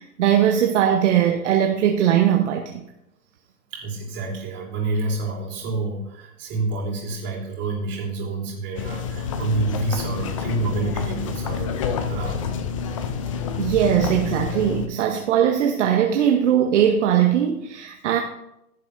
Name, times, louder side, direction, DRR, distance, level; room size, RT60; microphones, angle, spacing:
voice 1, 0.0-2.8 13.6-18.2, right 9 dB, 50° right, 4 dB, 0.9 m, -20 dB
voice 2, 3.7-12.4, right 3 dB, 25° right, -3 dB, 3.2 m, -28 dB
sound 1, 8.8-14.9, left 6 dB, 25° left, 0.4 m, -28 dB
15.5 x 7.0 x 2.6 m, 0.86 s
hypercardioid pair, 125°, 45 cm